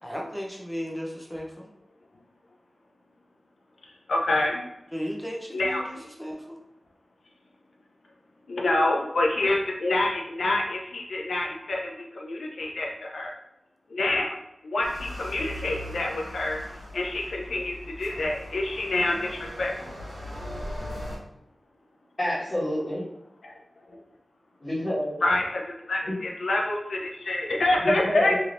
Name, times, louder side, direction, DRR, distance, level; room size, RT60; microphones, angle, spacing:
voice 1, 0.0-1.7 4.9-6.6, equal, 5° left, 0 dB, 0.7 m, -35 dB
voice 2, 4.1-4.6 5.5-6.0 8.5-13.3 13.9-14.3 14.6-16.6 16.9-19.7 23.4-23.5 25.2-28.3, left 2 dB, 90° left, 0 dB, 0.6 m, -27 dB
sound 1, 14.8-21.2, left 1 dB, 85° right, 1.2 m, -39 dB
voice 3, 22.2-23.0 24.6-25.1 26.0-26.2 27.8-28.3, left 1 dB, 35° left, -13 dB, 1.4 m, -28 dB
3.2 x 2.8 x 2.5 m, 0.87 s
wide cardioid pair, 60°, 0 cm